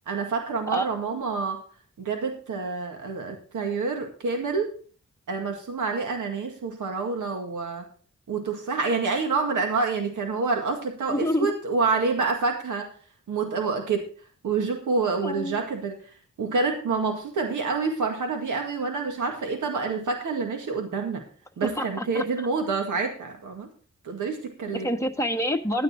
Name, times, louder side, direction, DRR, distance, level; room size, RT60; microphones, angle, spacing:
voice 1, 0.1-1.6 2.0-4.7 5.3-7.9 8.3-12.9 13.3-14.1 14.4-16.0 16.4-21.2 21.6-23.7 24.0-24.9, right 4 dB, 90° right, 4 dB, 2.0 m, -27 dB
voice 2, 0.7-1.2 11.1-11.6 15.2-15.6 21.6-22.5 24.7-25.8, equal, 10° left, 3 dB, 1.6 m, -28 dB
11.5 x 9.7 x 4.1 m, 0.41 s
cardioid pair, 55°, 30 cm